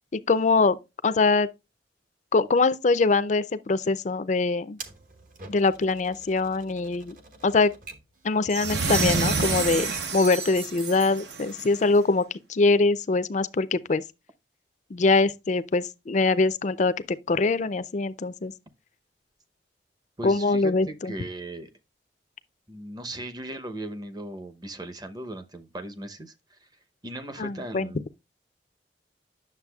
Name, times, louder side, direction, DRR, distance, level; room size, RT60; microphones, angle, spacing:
voice 1, 0.1-0.8 1.0-1.5 2.3-4.8 5.5-7.2 7.4-7.7 8.2-14.0 14.9-16.9 17.3-18.5 20.2-21.1 27.4-27.9, left 3 dB, 45° left, 0.4 m, -23 dB
Typewriter, 4.8-10.2, right 3 dB, 50° right, 1.0 m, -46 dB
sound 1, 8.5-11.8, right 4 dB, 75° right, 0.9 m, -28 dB
voice 2, 20.2-21.7 22.7-26.7 27.0-28.1, right 1 dB, 25° right, 0.7 m, -38 dB
9.6 x 6.7 x 2.3 m
head